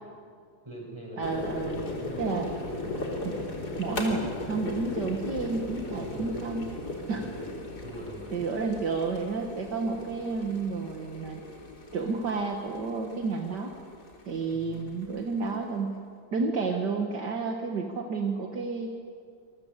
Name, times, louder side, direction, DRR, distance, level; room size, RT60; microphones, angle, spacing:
voice 1, 0.6-2.1 6.0-6.6 7.1-7.5 7.8-8.5 14.5-14.9, right 1 dB, 15° right, -1 dB, 7.0 m, -43 dB
sound 1, 1.2-15.7, left 2 dB, 55° left, 4.0 m, -37 dB
voice 2, 1.2-1.8 2.2-2.5 3.2-3.3 3.8-6.7 7.1-7.3 8.3-11.4 11.9-13.8 14.3-15.9 16.3-18.9, right 4 dB, 60° right, 2 dB, 2.2 m, -31 dB
26.5 x 22.0 x 8.2 m, 2.2 s
omnidirectional pair, 2.1 m